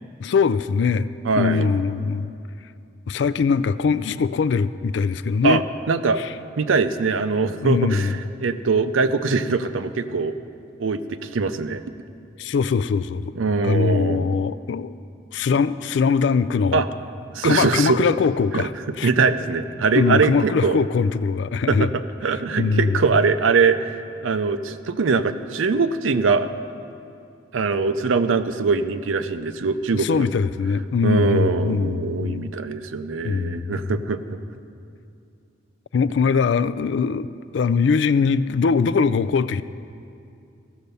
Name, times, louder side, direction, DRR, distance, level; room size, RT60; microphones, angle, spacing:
voice 1, 0.2-1.1 1.4-2.3 3.1-5.6 6.2-6.3 7.6-8.2 12.4-13.3 13.6-14.9 15.3-16.8 17.4-18.7 19.0-19.1 19.9-21.9 22.6-23.0 29.9-32.5 33.2-33.9 35.9-37.3 37.5-39.6, left 5 dB, 65° left, 14 dB, 0.3 m, -21 dB
voice 2, 1.2-1.7 5.4-6.3 6.6-10.3 10.8-11.8 13.4-14.3 16.7-16.9 17.3-18.0 18.5-18.7 19.0-20.8 21.7-26.5 27.5-30.3 31.0-34.4, right 4 dB, 90° right, 11 dB, 0.5 m, -22 dB
14.5 x 6.6 x 6.8 m, 2.5 s
head